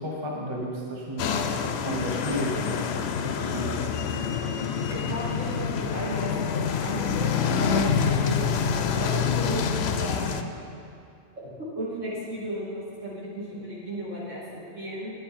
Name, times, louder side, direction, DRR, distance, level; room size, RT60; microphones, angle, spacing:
voice 1, 0.0-2.9 3.2-3.8, right 1 dB, 25° right, -2 dB, 1.1 m, -33 dB
sound 1, 1.2-10.4, left 7 dB, 65° left, 0.7 m, -27 dB
Dog, 2.5-8.0, right 2 dB, 45° right, 1.3 m, -45 dB
voice 2, 4.9-10.2 11.8-15.1, right 1 dB, 70° right, -7 dB, 2.9 m, -34 dB
10.0 x 9.9 x 4.4 m, 2.5 s
omnidirectional pair, 1.3 m